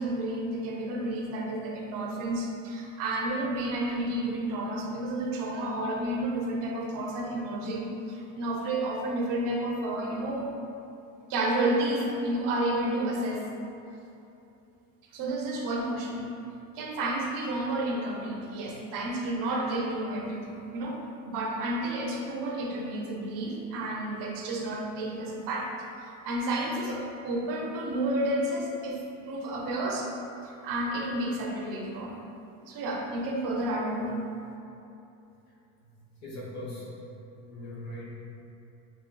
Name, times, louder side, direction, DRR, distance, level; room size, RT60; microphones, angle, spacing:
voice 1, 0.0-10.5 11.3-13.5 15.1-16.2 16.8-25.7 26.2-30.1 30.4-32.2 32.7-34.2, right 1 dB, 55° right, -1 dB, 0.8 m, -31 dB
voice 2, 36.0-38.1, left 1 dB, 45° left, -4 dB, 1.2 m, -41 dB
7.3 x 2.9 x 2.3 m, 2.8 s
cardioid pair, 140°, 38 cm